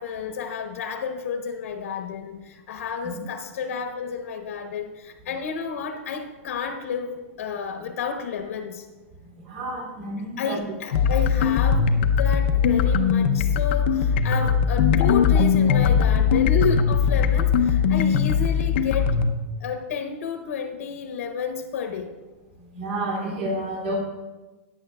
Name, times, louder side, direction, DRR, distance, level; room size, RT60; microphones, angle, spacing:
voice 1, 0.0-8.9 10.4-11.9 12.2-19.1 19.6-22.2, left 6 dB, 75° left, 5 dB, 1.0 m, -31 dB
voice 2, 9.5-10.7 22.7-24.0, right 1 dB, 45° right, -2 dB, 2.5 m, -30 dB
sound 1, 10.9-19.3, left 6 dB, 45° left, 0.6 m, -20 dB
16.5 x 9.4 x 2.2 m, 1.2 s
supercardioid pair, 170°, 8 cm